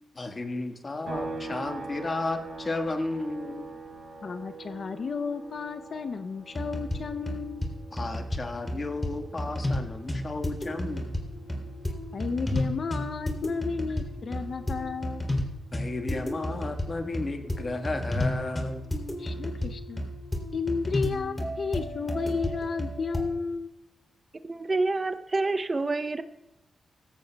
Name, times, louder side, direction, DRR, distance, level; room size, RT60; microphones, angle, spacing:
voice 1, 0.2-3.7 7.9-11.2 15.7-18.9, left 2 dB, 40° left, 5 dB, 1.5 m, -33 dB
sound 1, 1.1-14.6 14.9-17.1, right 3 dB, 65° right, 5.3 m, -44 dB
voice 2, 4.2-7.7 12.1-15.3 19.2-20.0 20.5-23.7, left 5 dB, 60° left, 9 dB, 0.5 m, -33 dB
sound 2, 6.6-7.0 7.3-7.7 8.0-8.4 8.7-9.1 9.4-9.8 10.1-23.2, left 1 dB, 20° left, 3.0 m, -32 dB
voice 3, 24.4-26.2, right 3 dB, 35° right, 11 dB, 0.6 m, -27 dB
16.5 x 15.0 x 2.3 m, 0.98 s
cardioid pair, 75°, 0 cm